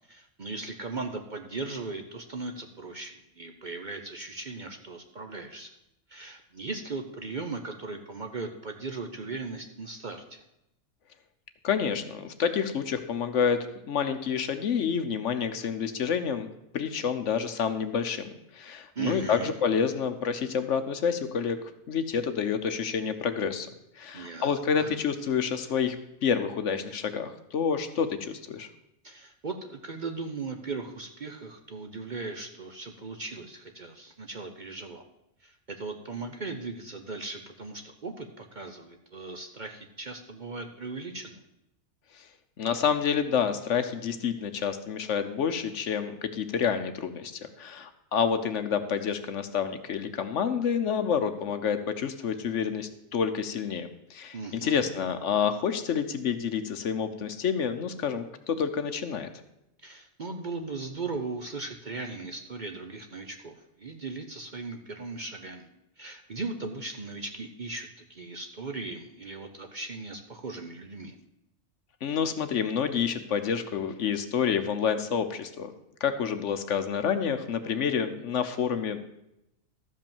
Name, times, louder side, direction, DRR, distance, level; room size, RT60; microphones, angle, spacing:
voice 1, 0.1-5.7 6.1-10.4 19.0-19.5 24.1-24.9 29.0-35.0 35.4-41.4 54.3-54.8 59.8-65.7 66.0-71.2, right 3 dB, 40° right, 5 dB, 0.8 m, -38 dB
voice 2, 11.6-21.6 21.9-23.7 24.0-26.0 26.2-28.7 42.2-42.3 42.6-59.3 72.0-75.7 76.0-79.0, left 7 dB, 65° left, 9 dB, 1.0 m, -28 dB
13.0 x 5.4 x 7.1 m, 0.85 s
omnidirectional pair, 1.4 m